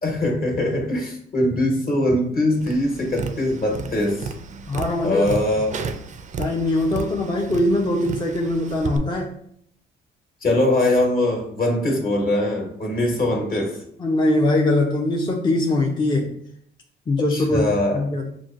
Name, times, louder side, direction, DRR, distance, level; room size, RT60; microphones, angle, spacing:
voice 1, 0.0-4.3 5.0-5.7 10.4-13.8 17.3-18.0, left 1 dB, 50° left, 0 dB, 1.3 m, -22 dB
Tap, 2.6-9.0, right 5 dB, 40° right, 0.4 m, -33 dB
voice 2, 4.7-5.3 6.4-9.3 14.0-16.3 17.1-18.3, left 1 dB, 20° left, 0 dB, 0.5 m, -22 dB
5.9 x 2.2 x 2.5 m, 0.70 s
cardioid pair, 90°, 20 cm